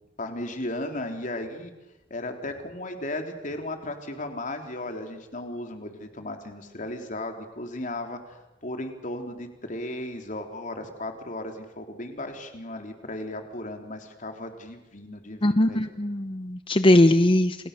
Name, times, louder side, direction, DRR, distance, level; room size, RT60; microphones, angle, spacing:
voice 1, 0.2-1.7 2.1-8.4 8.6-15.9, left 1 dB, 45° left, 5 dB, 3.6 m, -35 dB
voice 2, 15.4-17.6, left 1 dB, 30° left, 10 dB, 0.8 m, -20 dB
30.0 x 28.0 x 6.9 m, 1.1 s
head